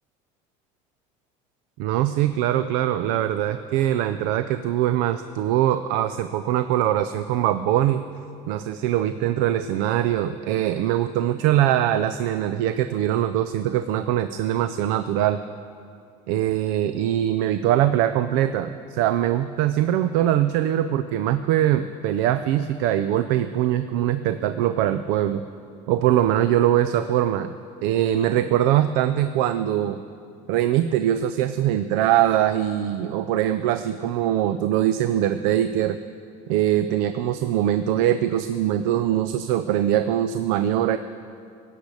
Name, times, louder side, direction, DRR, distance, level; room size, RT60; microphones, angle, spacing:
voice 1, 1.8-8.0 8.5-15.4 16.3-25.4 25.9-27.5 27.8-30.0 30.5-36.0 36.5-41.0, right 12 dB, 75° right, 11 dB, 0.5 m, -22 dB
17.0 x 6.6 x 8.4 m, 2.4 s
cardioid pair, 155°, 14 cm